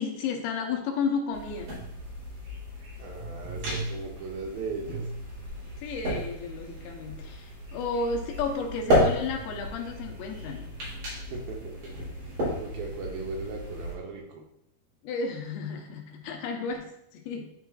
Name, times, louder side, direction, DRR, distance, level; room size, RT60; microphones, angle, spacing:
voice 1, 0.0-1.7 5.8-10.7 15.0-17.5, left 4 dB, 80° left, 2 dB, 2.6 m, -32 dB
sound 1, 1.3-13.9, equal, 55° right, 4.3 m, -33 dB
voice 2, 3.0-5.1 11.1-11.9 12.2-12.3 12.6-14.4, right 4 dB, 75° right, 0 dB, 2.4 m, -38 dB
11.5 x 4.3 x 2.4 m, 0.79 s
omnidirectional pair, 4.6 m